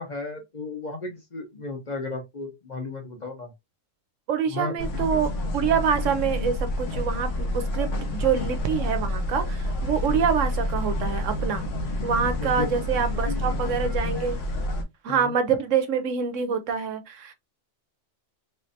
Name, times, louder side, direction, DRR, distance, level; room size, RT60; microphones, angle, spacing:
voice 1, 0.0-3.5 4.5-4.9 10.1-10.3 12.4-12.7 13.2-14.0 15.1-15.3, left 3 dB, 40° left, 0.9 m, -34 dB
voice 2, 4.3-11.6 12.0-14.4 15.0-17.3, right 7 dB, 75° right, 1.0 m, -26 dB
sound 1, 4.8-14.8, left 1 dB, 70° left, 1.2 m, -28 dB
3.5 x 3.1 x 2.7 m
omnidirectional pair, 1.3 m